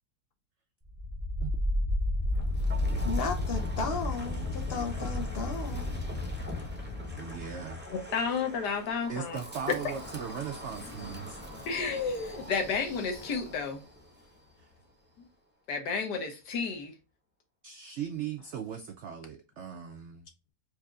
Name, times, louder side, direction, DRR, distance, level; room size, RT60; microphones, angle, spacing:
Wind, 0.8-13.9, left 1 dB, 15° right, 0.3 m, -34 dB
voice 1, 3.0-6.0, left 5 dB, 55° left, 0.7 m, -35 dB
voice 2, 7.1-7.8 9.1-11.4 14.6-14.7 17.6-20.3, right 8 dB, 80° right, 0.6 m, -38 dB
voice 3, 7.9-9.4 11.7-13.8 15.7-16.9, left 5 dB, 85° left, 1.5 m, -32 dB
4.7 x 2.7 x 2.3 m
omnidirectional pair, 1.7 m